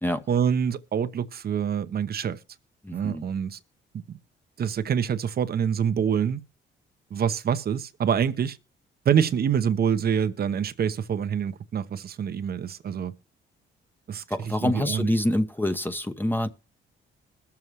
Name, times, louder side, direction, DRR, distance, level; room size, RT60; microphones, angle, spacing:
voice 1, 0.3-2.4 2.9-3.6 3.9-4.0 4.6-6.4 7.1-8.6 9.0-13.1 14.1-14.2 14.6-15.1, right 8 dB, 50° right, 1.0 m, -26 dB
voice 2, 2.8-3.2 14.3-16.5, left 1 dB, 10° left, 0.9 m, -26 dB
21.0 x 7.1 x 3.1 m
cardioid pair, 90°, 20 cm